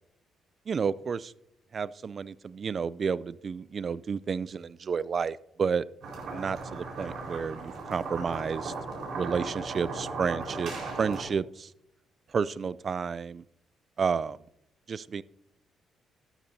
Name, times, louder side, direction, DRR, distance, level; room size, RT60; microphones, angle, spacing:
voice 1, 0.7-1.3 1.7-5.8 6.3-8.7 9.1-10.7 11.0-11.5 12.3-13.4 14.0-14.4 14.9-15.2, right 6 dB, 45° right, 19 dB, 0.4 m, -31 dB
sound 1, 6.0-11.2, right 3 dB, 70° right, 4.5 m, -37 dB
13.0 x 12.0 x 2.7 m, 0.77 s
cardioid pair, 90°, 0 cm